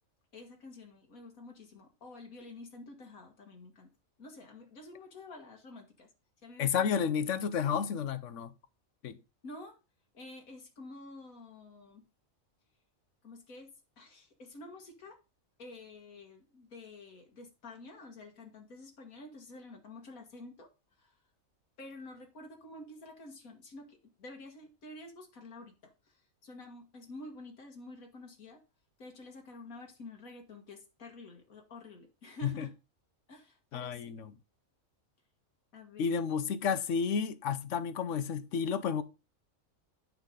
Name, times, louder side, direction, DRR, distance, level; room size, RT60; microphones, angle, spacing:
voice 1, 0.3-3.9 4.2-6.1 6.4-6.9 9.4-9.8 10.1-12.1 13.2-15.2 15.6-20.7 21.0-21.2 21.8-28.6 29.0-32.7 33.3-34.0 35.7-36.1, left 2 dB, 90° left, 2.2 m, -49 dB
voice 2, 6.6-8.5 9.0-9.2 32.4-32.7 33.7-34.3 36.0-39.0, left 7 dB, 65° left, 1.0 m, -31 dB
8.9 x 5.8 x 3.7 m
omnidirectional pair, 1.4 m